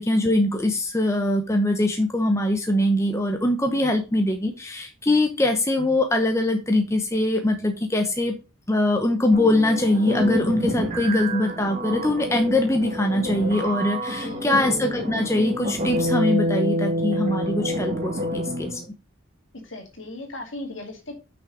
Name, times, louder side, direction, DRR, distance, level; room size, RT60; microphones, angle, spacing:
voice 1, 0.0-8.4 8.7-18.8, left 1 dB, 15° left, 4 dB, 0.8 m, -22 dB
sound 1, 9.3-18.8, equal, 35° right, 1.9 m, -28 dB
voice 2, 14.1-14.5 19.6-21.1, left 2 dB, 65° left, 3 dB, 2.3 m, -37 dB
6.3 x 6.0 x 4.9 m, 0.29 s
head